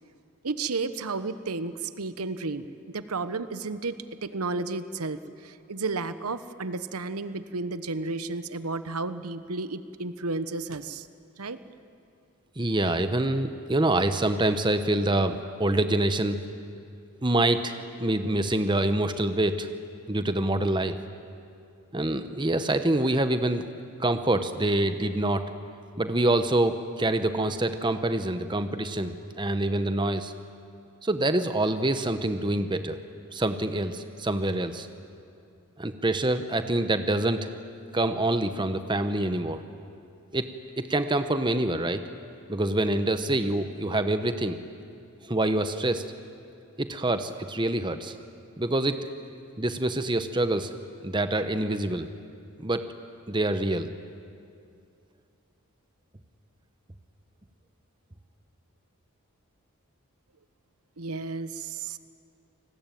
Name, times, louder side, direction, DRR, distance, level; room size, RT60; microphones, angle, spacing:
voice 1, 0.4-2.7 2.9-11.1 11.4-11.6 61.0-62.0, right 3 dB, 85° right, 12 dB, 1.0 m, -32 dB
voice 2, 12.6-16.4 17.2-19.7 20.1-21.0 21.9-23.6 24.0-25.4 26.0-30.3 31.0-33.0 33.3-34.9 35.8-37.5 37.9-39.6 40.3-40.5 40.8-42.0 42.5-44.6 45.3-46.0 46.8-48.1 48.6-49.0 49.6-50.7 51.0-52.1 52.6-52.8 53.3-53.9, right 1 dB, 20° right, 9 dB, 1.0 m, -26 dB
28.5 x 20.0 x 9.2 m, 2.5 s
head